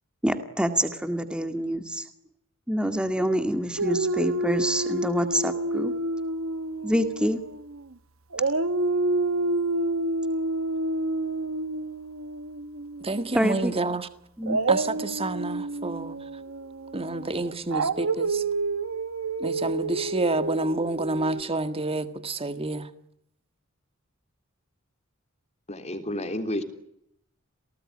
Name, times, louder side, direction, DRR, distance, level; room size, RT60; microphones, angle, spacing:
voice 1, 0.2-2.0 2.7-5.9 6.8-7.4 13.3-13.7 14.4-14.6, equal, 5° right, 2.0 m, -26 dB
Dog, 3.8-7.9 8.3-13.3 14.4-21.4, right 2 dB, 80° right, 1.1 m, -29 dB
voice 2, 13.0-14.1 14.7-16.2 16.9-18.4 19.4-22.9, right 2 dB, 30° right, 1.8 m, -29 dB
voice 3, 25.7-26.6, left 1 dB, 35° left, 3.4 m, -30 dB
29.0 x 18.5 x 9.6 m
head